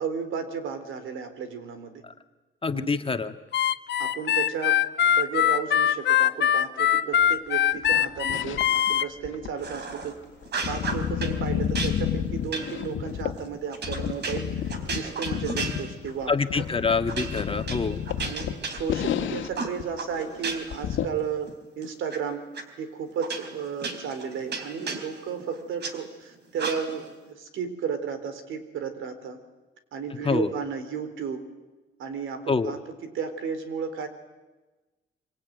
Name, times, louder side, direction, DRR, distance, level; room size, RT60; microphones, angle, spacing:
voice 1, 0.0-2.0 2.7-3.0 4.0-4.8 5.1-10.2 10.7-14.5 14.9-16.3 18.2-22.4 22.8-29.4 29.9-31.4 32.0-34.1, right 6 dB, 80° right, 9 dB, 3.9 m, -33 dB
voice 2, 2.6-3.3 16.3-18.0 30.2-30.5 32.5-32.7, left 4 dB, 25° left, 7 dB, 1.7 m, -26 dB
Harmonica, 3.5-9.1, left 10 dB, 60° left, 1.3 m, -22 dB
sound 1, 7.7-8.9 9.2-13.5 13.8-19.5 19.8-19.9 20.2-20.3 20.7-21.1, left 9 dB, 75° left, 2.1 m, -30 dB
sound 2, 9.6-10.1 10.4-11.4 11.7-16.2 16.5-16.7 17.1-19.2 19.5-20.8 21.2-22.2 22.5-22.6 23.2-25.9 26.6-27.1, right 4 dB, 60° right, 4.1 m, -34 dB
25.5 x 25.0 x 9.4 m, 1.2 s
cardioid pair, 90°, 20 cm